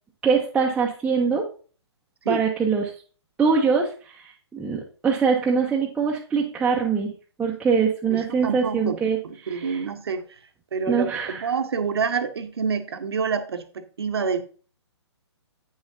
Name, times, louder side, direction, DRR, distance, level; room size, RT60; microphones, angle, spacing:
voice 1, 0.2-1.4 2.3-2.9 3.4-7.1 7.4-9.8 10.9-11.4, right 5 dB, 5° right, 0.7 m, -23 dB
voice 2, 8.1-10.2 10.7-14.4, right 5 dB, 60° right, 1.0 m, -28 dB
8.8 x 6.6 x 2.6 m
figure-of-eight pair, 125°, 15 cm